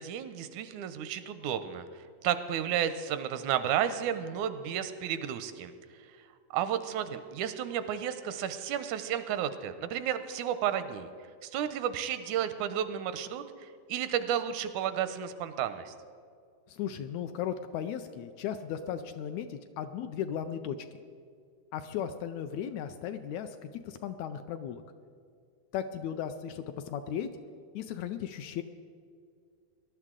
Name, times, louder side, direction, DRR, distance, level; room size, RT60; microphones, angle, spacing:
voice 1, 0.0-1.9 2.2-5.7 6.5-11.1 11.4-15.9, right 9 dB, 80° right, 11 dB, 1.9 m, -32 dB
voice 2, 16.7-20.8 21.7-24.8 25.7-27.3 27.7-28.6, left 9 dB, 80° left, 9 dB, 1.7 m, -36 dB
19.0 x 11.5 x 3.7 m, 2.2 s
omnidirectional pair, 3.5 m